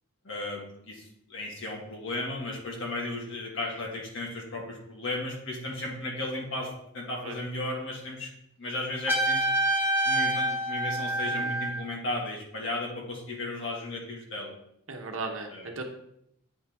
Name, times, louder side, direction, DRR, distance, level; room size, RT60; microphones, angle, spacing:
voice 1, 0.2-8.3 8.6-9.5 10.0-14.6 15.5-15.7, left 2 dB, 55° left, -1 dB, 1.7 m, -35 dB
Trumpet, 9.1-11.9, right 1 dB, 10° right, 0.7 m, -27 dB
voice 2, 14.9-15.8, right 3 dB, 65° right, 3 dB, 1.0 m, -37 dB
8.6 x 4.5 x 3.5 m, 0.76 s
head